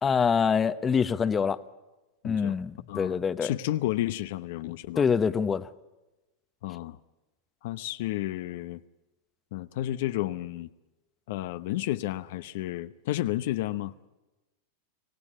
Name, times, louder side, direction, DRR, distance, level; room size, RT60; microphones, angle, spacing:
voice 1, 0.0-1.6 2.2-3.5 5.0-5.7, left 6 dB, 20° left, 13 dB, 0.9 m, -25 dB
voice 2, 2.2-2.6 2.9-5.0 6.6-7.0 7.6-8.8 9.5-10.7 11.3-13.9, left 15 dB, 65° left, 12 dB, 0.8 m, -31 dB
25.5 x 16.5 x 10.0 m, 1.1 s
hypercardioid pair, 110°, 0 cm